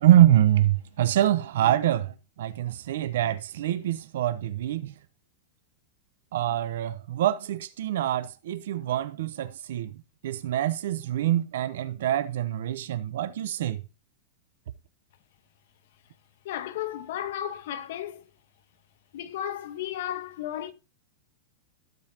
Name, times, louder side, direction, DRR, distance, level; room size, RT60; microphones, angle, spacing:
voice 1, 0.0-4.9 6.3-9.9 10.2-13.8, right 12 dB, 70° right, 0.7 m, -25 dB
voice 2, 16.4-18.2 19.1-20.7, left 11 dB, 55° left, 1.2 m, -34 dB
16.5 x 5.5 x 2.9 m
supercardioid pair, 170°, 0 cm